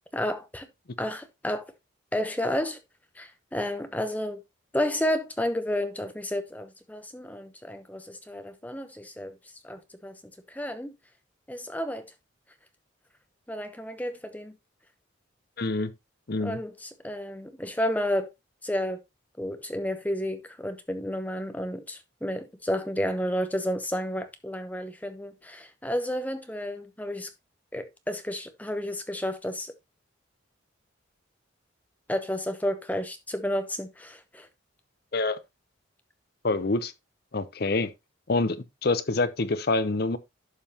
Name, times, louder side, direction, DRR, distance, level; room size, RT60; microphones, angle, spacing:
voice 1, 0.1-0.7 1.0-1.7 2.1-2.8 3.2-4.4 4.7-9.4 9.6-10.2 10.5-10.9 11.5-12.0 13.5-14.5 16.4-18.3 18.6-19.0 19.4-27.3 27.7-29.7 32.1-34.5, left 1 dB, 10° left, 0.8 m, -31 dB
voice 2, 15.6-15.9 16.3-16.6 35.1-35.4 36.4-36.9 37.3-37.9 38.3-40.2, left 3 dB, 50° left, 0.7 m, -26 dB
11.0 x 5.5 x 2.9 m
head